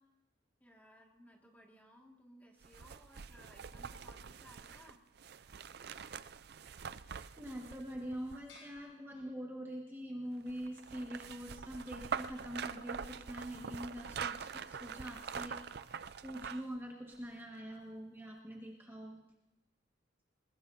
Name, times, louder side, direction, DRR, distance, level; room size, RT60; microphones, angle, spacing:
voice 1, 0.6-5.0, equal, 10° left, 0 dB, 2.0 m, -60 dB
sound 1, 2.6-8.8 10.5-16.8 17.1-17.2, right 6 dB, 55° right, 0.5 m, -44 dB
voice 2, 7.4-19.2, equal, 10° right, -1 dB, 1.6 m, -44 dB
sound 2, 8.5-10.0, left 3 dB, 75° left, 6.4 m, -60 dB
21.5 x 21.0 x 2.7 m, 0.96 s
head